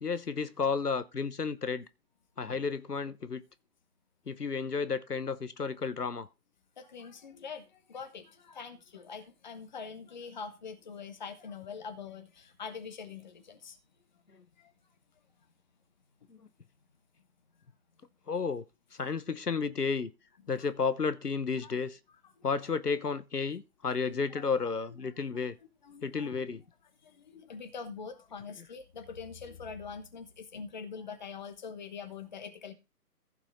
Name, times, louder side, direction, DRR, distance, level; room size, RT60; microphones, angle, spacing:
voice 1, 0.0-1.8 2.4-3.4 4.3-6.3 16.3-16.4 18.3-18.6 19.0-20.1 20.5-22.0 22.4-25.5 26.0-26.6, left 5 dB, 75° left, 1.1 m, -32 dB
voice 2, 6.8-13.8 14.6-14.7 21.6-21.7 22.4-22.5 24.4-24.5 25.2-25.4 25.8-26.3 27.0-32.7, left 5 dB, 30° left, 1.2 m, -44 dB
15.0 x 6.0 x 4.2 m
figure-of-eight pair, 145°, 47 cm